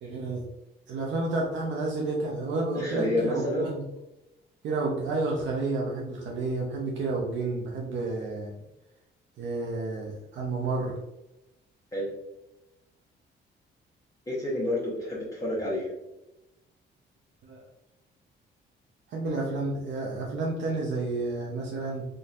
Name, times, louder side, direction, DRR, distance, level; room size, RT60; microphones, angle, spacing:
voice 1, 0.0-0.4 0.9-3.8 4.6-8.5 9.4-11.0 17.4-17.6 19.1-22.1, right 3 dB, 70° right, -2 dB, 0.7 m, -30 dB
voice 2, 2.7-3.7 11.9-12.1 14.3-15.9, left 1 dB, 15° left, -7 dB, 1.0 m, -29 dB
3.7 x 2.6 x 2.4 m, 0.95 s
cardioid pair, 90°, 20 cm